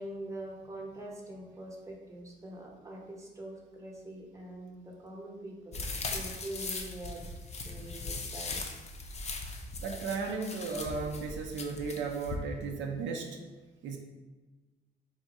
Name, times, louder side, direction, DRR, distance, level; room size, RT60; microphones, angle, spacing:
voice 1, 0.0-7.2 7.6-8.8, right 1 dB, 15° right, -2 dB, 0.9 m, -44 dB
sound 1, 5.7-12.4, left 3 dB, 35° left, 0.5 m, -39 dB
voice 2, 9.8-13.3 13.8-14.0, right 4 dB, 70° right, 2 dB, 0.5 m, -35 dB
3.5 x 2.4 x 4.1 m, 1.2 s
cardioid pair, 90°, 20 cm